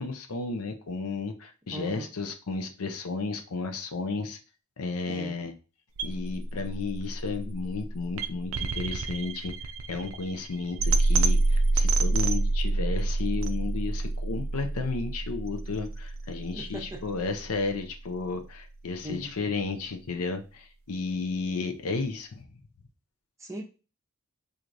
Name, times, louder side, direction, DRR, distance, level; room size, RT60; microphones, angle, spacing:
voice 1, 0.0-4.4 4.8-5.5 6.0-9.5 9.9-22.4, left 4 dB, 80° left, 0.6 m, -33 dB
voice 2, 1.7-2.1 5.1-5.4 16.5-17.0 19.0-19.3 23.4-23.6, right 1 dB, 15° right, 0.6 m, -39 dB
sound 1, 6.0-18.0, right 2 dB, 60° right, 0.4 m, -28 dB
4.5 x 2.5 x 2.6 m
head